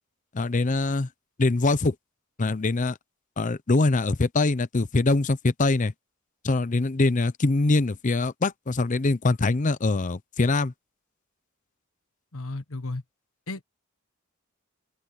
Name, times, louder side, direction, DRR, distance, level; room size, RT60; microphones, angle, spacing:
voice 1, 0.3-1.1 1.4-1.9 2.4-3.0 3.4-5.9 6.4-10.7, left 3 dB, 35° left, 0.6 m, -23 dB
voice 2, 12.3-13.0 13.5-13.6, left 2 dB, 85° left, 1.3 m, -33 dB
open air
head